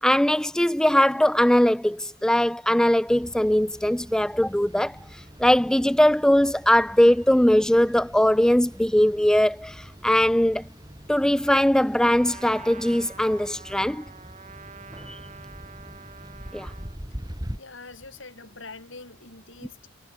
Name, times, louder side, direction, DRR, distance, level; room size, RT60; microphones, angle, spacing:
voice 1, 0.0-10.6 11.1-14.0 15.1-15.2 16.5-16.7, equal, 5° left, 0.4 m, -20 dB
sound 1, 3.1-17.6, equal, 20° right, 2.9 m, -43 dB
Trumpet, 12.1-17.0, right 5 dB, 35° right, 3.5 m, -46 dB
voice 2, 17.6-19.9, left 3 dB, 65° left, 5.2 m, -44 dB
head